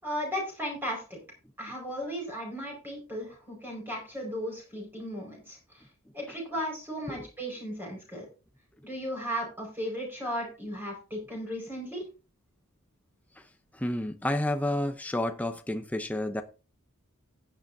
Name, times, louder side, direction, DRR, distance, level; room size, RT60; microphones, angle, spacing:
voice 1, 0.0-1.2 1.6-5.8 6.1-8.3 8.8-12.1, equal, 10° right, 4.9 m, -36 dB
voice 2, 13.7-16.4, left 1 dB, 5° left, 0.6 m, -30 dB
15.5 x 9.0 x 2.7 m
head